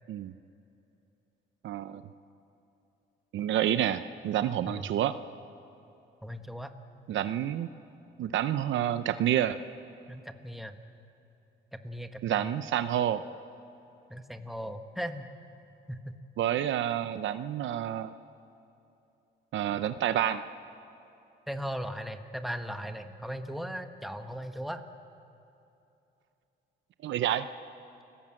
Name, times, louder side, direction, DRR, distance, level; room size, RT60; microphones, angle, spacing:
voice 1, 1.6-2.0 3.3-5.1 7.1-7.7 8.2-9.6 12.2-13.2 16.4-18.1 19.5-20.4 27.0-27.5, right 11 dB, 75° right, 12 dB, 0.7 m, -28 dB
voice 2, 6.2-6.8 10.1-10.8 11.7-12.5 14.1-15.3 15.9-16.2 21.5-24.8, equal, ahead, 7 dB, 1.5 m, -38 dB
30.0 x 17.0 x 7.7 m, 2.8 s
cardioid pair, 90°, 20 cm